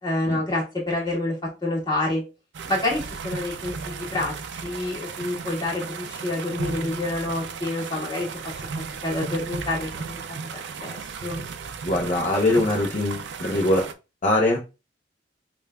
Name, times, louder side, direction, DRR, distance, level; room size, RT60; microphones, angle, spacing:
voice 1, 0.0-1.3 1.6-2.2 2.7-8.3 9.0-10.2 10.5-11.4, left 2 dB, 25° left, -5 dB, 1.7 m, -28 dB
sound 1, 2.5-13.9, right 5 dB, 70° right, 0.4 m, -35 dB
voice 2, 11.8-13.8 14.2-14.6, left 1 dB, 40° left, -2 dB, 0.7 m, -22 dB
5.3 x 2.4 x 2.2 m, 0.29 s
head